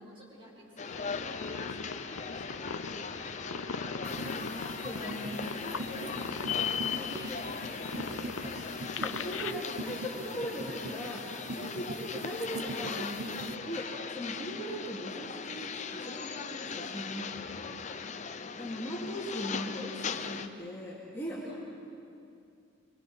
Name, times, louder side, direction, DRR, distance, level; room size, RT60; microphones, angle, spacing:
voice 1, 0.0-3.6 5.5-8.9 17.3-18.1 18.7-18.8 21.2-21.8, equal, 25° right, -4 dB, 6.5 m, -55 dB
sound 1, 0.8-20.5, left 5 dB, 35° left, 0.7 m, -38 dB
sound 2, 0.9-9.5, left 5 dB, 85° left, 0.7 m, -41 dB
voice 2, 4.0-5.5 6.9-8.2 9.0-17.7 18.4-21.5, equal, 10° left, -6 dB, 2.7 m, -40 dB
sound 3, 4.0-13.5, right 2 dB, 70° right, 1.3 m, -42 dB
25.5 x 23.5 x 6.3 m, 2.5 s
head